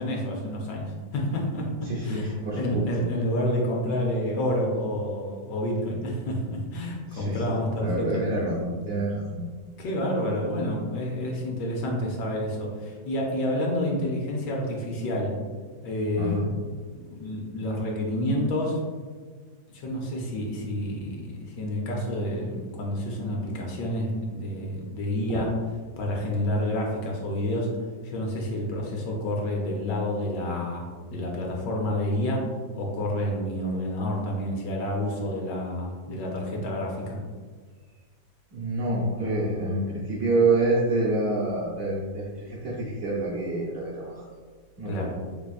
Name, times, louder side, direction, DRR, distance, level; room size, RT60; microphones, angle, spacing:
voice 1, 0.0-8.2 9.8-15.3 15.8-16.4 16.9-18.8 19.7-25.5 26.0-27.7 28.0-32.5 32.7-37.2 44.9-45.1, left 1 dB, 70° left, -1 dB, 1.3 m, -29 dB
voice 2, 1.9-3.1 7.1-9.4 16.2-16.5 38.5-44.3 44.8-45.1, right 2 dB, 60° right, -7 dB, 0.9 m, -27 dB
3.7 x 3.4 x 2.3 m, 1.5 s
omnidirectional pair, 2.1 m